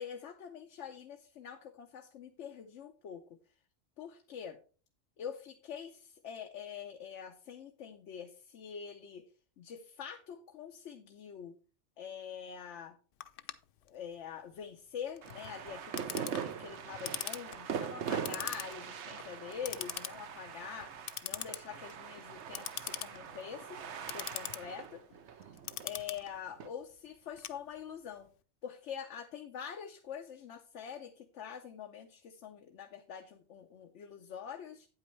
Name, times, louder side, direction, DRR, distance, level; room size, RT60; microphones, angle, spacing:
voice 1, 0.0-3.4 4.0-4.6 5.2-9.2 9.6-11.6 12.0-13.0 13.9-20.9 21.2-25.0 25.3-28.3 28.6-34.9, left 8 dB, 85° left, 5 dB, 1.1 m, -45 dB
Clock, 13.2-28.1, left 10 dB, 60° left, 0.6 m, -44 dB
sound 1, 15.2-26.7, right 7 dB, 80° right, 1.0 m, -42 dB
8.8 x 8.5 x 3.1 m, 0.37 s
omnidirectional pair, 1.2 m